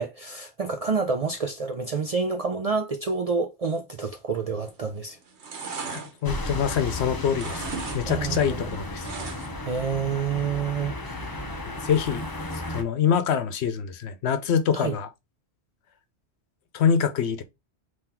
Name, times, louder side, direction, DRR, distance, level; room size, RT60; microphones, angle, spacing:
voice 1, 0.0-5.2 8.1-8.6 9.6-11.4 14.7-14.9, right 5 dB, 50° right, 0.4 m, -28 dB
sound 1, 4.6-4.9 5.2-7.0 7.3-8.0 8.3-9.7 10.0-10.1, right 5 dB, 75° right, 1.3 m, -37 dB
voice 2, 5.9-7.6 7.9-9.1 11.8-12.2 12.7-15.1 16.7-17.4, left 7 dB, 75° left, 0.9 m, -25 dB
sound 2, 6.2-12.8, left 1 dB, 25° left, 0.6 m, -34 dB
3.8 x 3.0 x 4.2 m
omnidirectional pair, 1.1 m